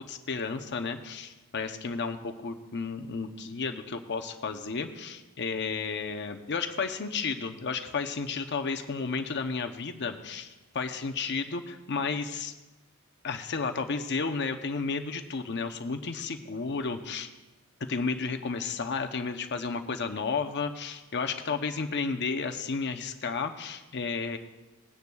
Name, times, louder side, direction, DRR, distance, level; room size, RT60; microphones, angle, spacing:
voice 1, 0.1-12.5 13.2-17.3 17.9-24.4, left 4 dB, 55° left, 6 dB, 0.8 m, -32 dB
19.5 x 9.4 x 2.4 m, 1.1 s
head